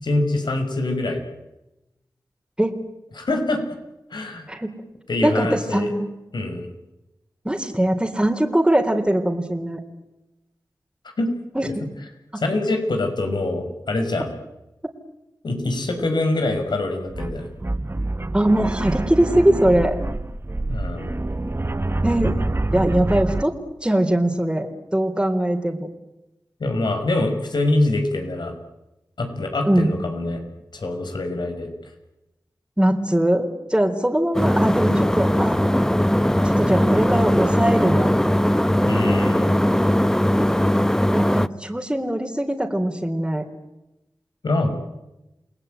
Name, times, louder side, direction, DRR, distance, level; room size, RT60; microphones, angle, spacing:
voice 1, 0.0-1.2 3.2-3.6 4.1-4.4 5.1-5.9 6.3-6.7 11.2-11.3 12.4-14.3 15.4-17.5 20.7-21.1 26.6-28.5 29.2-30.4 30.7-31.7 38.9-39.6 44.4-44.7, left 2 dB, 80° left, 5 dB, 5.9 m, -24 dB
voice 2, 5.2-6.1 7.5-9.8 11.6-11.7 18.3-20.0 22.0-22.3 22.7-24.7 24.9-25.9 29.6-29.9 32.8-35.6 36.4-38.1 41.1-43.4, right 1 dB, 10° right, 2 dB, 3.7 m, -21 dB
sound 1, 16.6-16.7 17.1-23.4, right 2 dB, 35° right, 1.3 m, -26 dB
sound 2, 34.3-41.5, equal, 5° left, 0.9 m, -19 dB
29.5 x 19.5 x 9.3 m, 0.96 s
cardioid pair, 40°, 7 cm